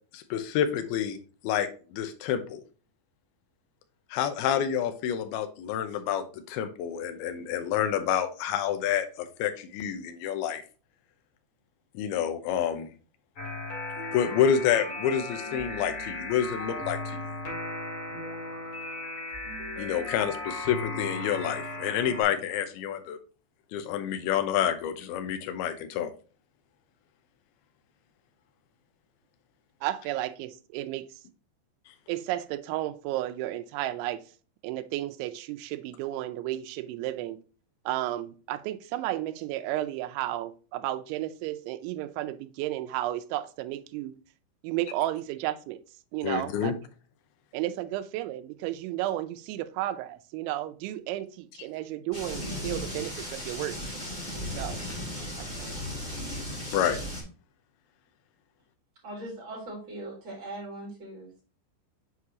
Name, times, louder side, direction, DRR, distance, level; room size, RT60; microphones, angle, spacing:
voice 1, 0.1-1.2 1.4-2.6 4.1-10.6 11.9-12.9 14.1-17.2 19.8-23.2 23.7-26.1 46.2-46.7 56.7-57.0, left 9 dB, 80° left, 2.3 m, -28 dB
sound 1, 13.4-22.2, left 2 dB, 45° left, 2.0 m, -36 dB
voice 2, 29.8-31.1 32.1-34.2 34.6-37.4 37.9-44.1 44.6-45.8 46.1-46.7 47.5-53.8 54.6-54.8 55.2-55.7, right 14 dB, 85° right, 3.0 m, -33 dB
sound 2, 52.1-57.2, equal, 20° left, 1.3 m, -36 dB
voice 3, 59.0-61.4, right 1 dB, 30° right, 3.4 m, -40 dB
7.9 x 4.7 x 2.8 m
omnidirectional pair, 5.3 m